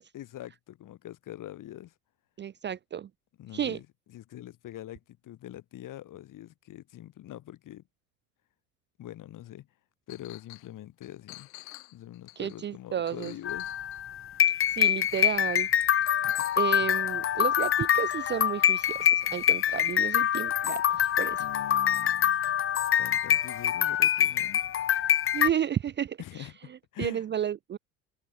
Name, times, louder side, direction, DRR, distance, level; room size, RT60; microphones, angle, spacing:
voice 1, 0.1-1.9 3.4-7.8 9.0-9.7 10.1-11.5 11.9-13.7 16.2-16.4 16.8-16.9 21.4-22.4 23.0-24.6 26.2-27.2, left 13 dB, 45° left, 4.4 m, -44 dB
voice 2, 2.4-3.1 3.5-3.8 12.4-13.3 14.8-15.7 16.6-21.4 25.3-26.5 27.0-27.8, right 9 dB, 25° right, 0.7 m, -32 dB
Chink clink, 10.1-10.7 11.0-14.1 14.8-15.7 16.0-17.0, left 18 dB, 70° left, 4.4 m, -50 dB
sound 1, 13.5-25.5, left 10 dB, 30° left, 1.1 m, -25 dB
hypercardioid pair, 75°, 44 cm